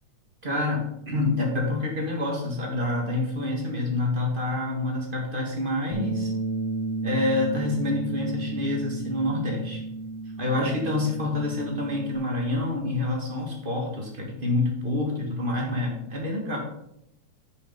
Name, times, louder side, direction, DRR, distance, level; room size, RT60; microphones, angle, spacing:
voice 1, 0.4-6.3 7.0-9.8 10.4-16.6, left 2 dB, 25° right, 0 dB, 1.4 m, -27 dB
Bass guitar, 5.9-12.2, right 3 dB, 65° left, 2.4 m, -32 dB
8.5 x 5.1 x 5.5 m, 0.78 s
omnidirectional pair, 3.4 m